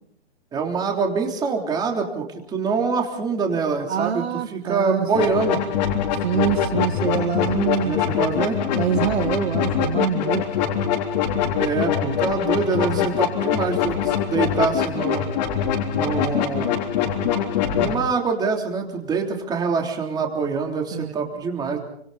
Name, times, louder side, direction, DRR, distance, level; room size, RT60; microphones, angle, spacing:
voice 1, 0.5-5.6 7.8-8.6 11.6-15.3 15.9-16.7 17.7-21.8, right 5 dB, 10° right, 3.4 m, -25 dB
voice 2, 3.9-5.1 6.2-8.0 8.7-10.5 20.9-21.1, right 9 dB, 65° right, 1.7 m, -25 dB
sound 1, 5.1-17.9, left 8 dB, 40° left, 3.6 m, -23 dB
29.5 x 25.0 x 4.2 m
hypercardioid pair, 160°, 33 cm